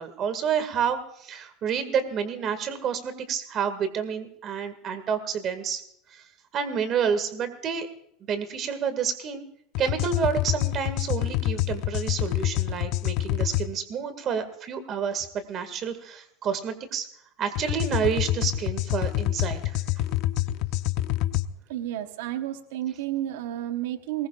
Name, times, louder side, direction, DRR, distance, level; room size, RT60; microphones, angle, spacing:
voice 1, 0.0-5.8 6.1-6.2 6.5-7.9 8.3-9.4 9.8-17.1 17.4-19.8, right 7 dB, 35° right, 10 dB, 2.1 m, -29 dB
sound 1, 9.7-13.7 17.5-21.4, left 14 dB, 50° left, 0.7 m, -27 dB
voice 2, 21.7-24.3, right 13 dB, 85° right, 8 dB, 1.2 m, -31 dB
22.5 x 20.5 x 2.5 m, 0.71 s
supercardioid pair, 155°, 0 cm